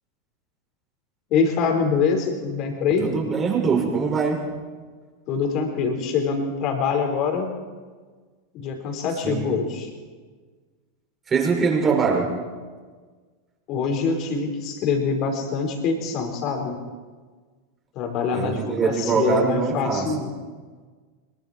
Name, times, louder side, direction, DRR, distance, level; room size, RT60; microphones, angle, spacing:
voice 1, 1.3-3.1 5.3-7.5 8.5-9.9 13.7-16.8 17.9-20.3, left 5 dB, 45° left, 4 dB, 5.0 m, -24 dB
voice 2, 3.0-4.5 9.2-9.6 11.3-12.4 18.3-20.1, right 5 dB, 25° right, 1 dB, 6.2 m, -23 dB
26.0 x 23.0 x 4.6 m, 1.4 s
figure-of-eight pair, 90°, 0 cm